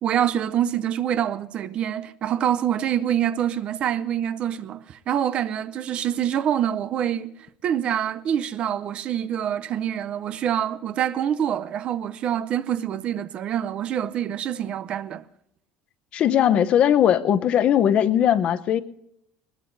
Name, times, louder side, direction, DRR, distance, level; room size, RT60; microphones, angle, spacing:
voice 1, 0.0-7.3 7.6-15.2, right 10 dB, 35° right, 0.5 m, -26 dB
voice 2, 16.1-18.8, left 10 dB, 35° left, 0.7 m, -19 dB
20.5 x 20.5 x 2.6 m
cardioid pair, 170°, 3 cm